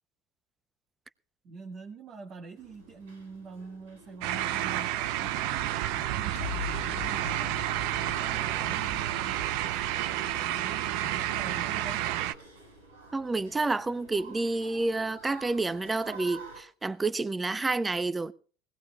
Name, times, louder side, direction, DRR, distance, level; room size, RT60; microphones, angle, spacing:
voice 1, 1.4-7.7 8.0-9.5 10.3-12.1, right 3 dB, 45° right, 1.9 m, -45 dB
sound 1, 2.6-16.6, right 2 dB, 90° right, 7.9 m, -51 dB
sound 2, 4.2-12.3, right 13 dB, 70° right, 0.7 m, -30 dB
sound 3, 6.3-12.8, left 7 dB, 80° left, 1.1 m, -43 dB
voice 2, 13.1-18.3, right 3 dB, 15° right, 0.8 m, -29 dB
20.5 x 17.5 x 2.4 m
hypercardioid pair, 85°, 0 cm